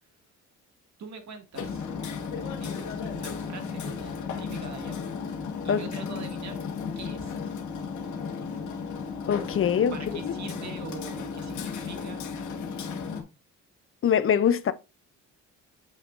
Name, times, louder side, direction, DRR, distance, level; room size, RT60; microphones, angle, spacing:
voice 1, 1.0-1.8 2.2-5.0 5.6-6.6 7.0-7.3 8.0-8.1 9.7-12.2, right 5 dB, 65° right, 2.2 m, -43 dB
Hammer, 1.5-13.2, left 5 dB, 75° left, 1.7 m, -34 dB
voice 2, 9.3-9.9 10.2-10.3 14.0-14.7, left 8 dB, 45° left, 0.6 m, -23 dB
7.5 x 5.8 x 2.6 m
cardioid pair, 90°, 30 cm